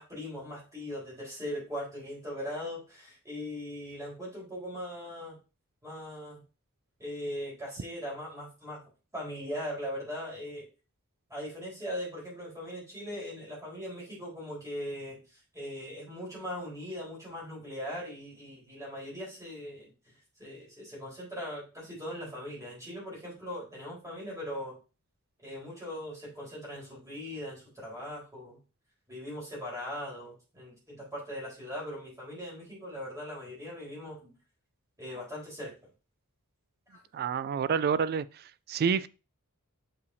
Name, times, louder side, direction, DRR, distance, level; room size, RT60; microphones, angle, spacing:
voice 1, 0.0-5.4 5.8-6.4 7.0-8.8 9.1-10.6 11.3-15.2 15.5-24.7 25.4-28.6 29.1-34.3 35.0-35.7 36.9-37.0, equal, 15° right, 3.9 m, -40 dB
voice 2, 37.1-38.2 38.7-39.1, right 6 dB, 45° right, 0.3 m, -27 dB
6.7 x 5.5 x 2.7 m
head